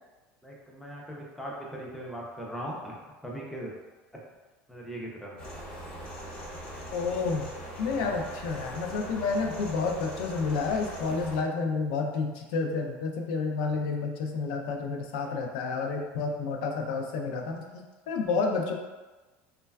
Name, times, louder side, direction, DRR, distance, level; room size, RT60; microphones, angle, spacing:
voice 1, 0.4-3.7 4.1-4.2 4.7-5.3 7.9-8.1, right 1 dB, 5° left, -3 dB, 0.4 m, -39 dB
sound 1, 5.4-11.4, right 1 dB, 30° left, 0.7 m, -41 dB
voice 2, 6.9-7.5 7.8-18.7, left 4 dB, 80° left, 2 dB, 0.4 m, -30 dB
3.1 x 2.2 x 2.2 m, 1.2 s
cardioid pair, 165°, 5 cm